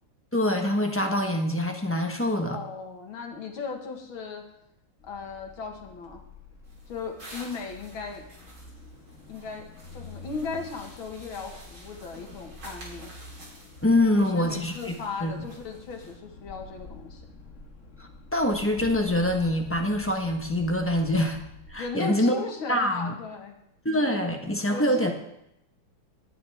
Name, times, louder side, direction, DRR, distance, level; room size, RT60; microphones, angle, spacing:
voice 1, 0.3-2.6 13.8-14.9 15.2-15.3 18.0-21.4 21.7-22.3 22.7-23.1 23.8-25.1, left 1 dB, 10° left, 2 dB, 0.7 m, -25 dB
voice 2, 2.5-4.4 5.0-6.2 6.9-8.2 9.3-9.7 9.9-13.1 14.2-17.3 21.8-23.5 24.7-25.1, left 4 dB, 80° left, 3 dB, 2.3 m, -37 dB
sound 1, 5.0-21.9, left 2 dB, 40° left, 1.5 m, -47 dB
sound 2, 6.6-16.1, right 1 dB, 75° right, 4.4 m, -50 dB
18.5 x 8.8 x 3.5 m, 0.80 s
omnidirectional pair, 2.2 m